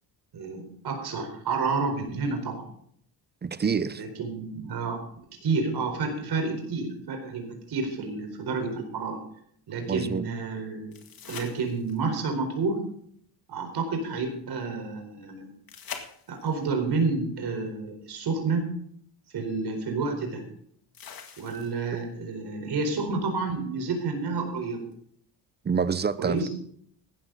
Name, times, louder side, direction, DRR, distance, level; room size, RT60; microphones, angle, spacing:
voice 1, 0.3-2.6 3.9-5.0 5.4-9.2 9.7-10.9 11.3-12.8 13.5-15.6 16.3-18.7 19.3-20.4 21.4-24.8 26.2-26.5, right 4 dB, 60° right, 4.5 m, -30 dB
voice 2, 3.4-4.0 9.9-10.3 25.6-26.5, right 5 dB, 25° right, 0.6 m, -27 dB
sound 1, 10.9-12.2 15.7-16.7 18.6-18.7 20.9-22.0 24.9-25.0, left 6 dB, 50° left, 2.2 m, -43 dB
16.0 x 13.0 x 4.0 m
cardioid pair, 130°, 44 cm